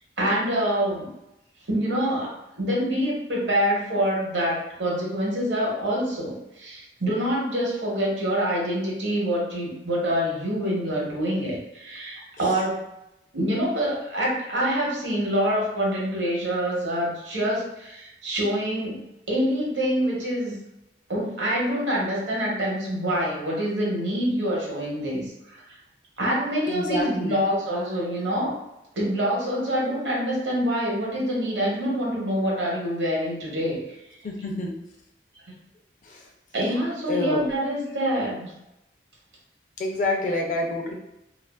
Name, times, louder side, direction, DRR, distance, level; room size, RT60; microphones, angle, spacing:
voice 1, 0.2-1.1 1.7-12.9 13.3-20.6 21.1-25.6 26.2-28.6 29.0-33.8 36.5-38.5, equal, 75° right, -3 dB, 0.9 m, -26 dB
voice 2, 26.7-27.4 34.2-34.7 36.0-36.3 37.1-37.6 39.8-40.9, left 1 dB, 45° left, 1 dB, 0.4 m, -28 dB
2.4 x 2.3 x 2.2 m, 0.88 s
head